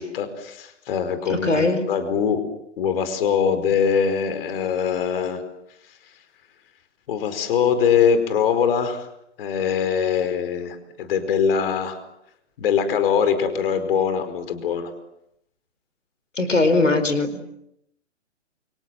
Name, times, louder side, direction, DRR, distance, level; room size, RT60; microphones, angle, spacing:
voice 1, 0.0-2.4 2.8-5.4 7.1-9.1 9.4-12.0 12.6-14.9, left 7 dB, 50° left, 10 dB, 4.9 m, -22 dB
voice 2, 1.3-1.8 16.4-17.4, left 2 dB, 90° left, 10 dB, 4.3 m, -20 dB
28.5 x 26.0 x 7.9 m, 0.78 s
hypercardioid pair, 130°, 36 cm